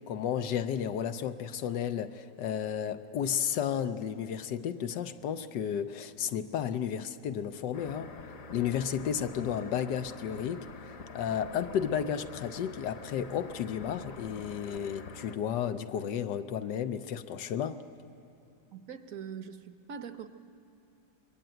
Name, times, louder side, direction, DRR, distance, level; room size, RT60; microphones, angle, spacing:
voice 1, 0.0-8.1 8.5-10.7 11.1-17.8, left 8 dB, 85° left, 1.4 m, -33 dB
sound 1, 7.7-15.4, left 4 dB, 55° left, 1.4 m, -46 dB
voice 2, 18.7-20.3, right 7 dB, 55° right, 1.2 m, -42 dB
25.0 x 21.5 x 9.1 m
omnidirectional pair, 1.9 m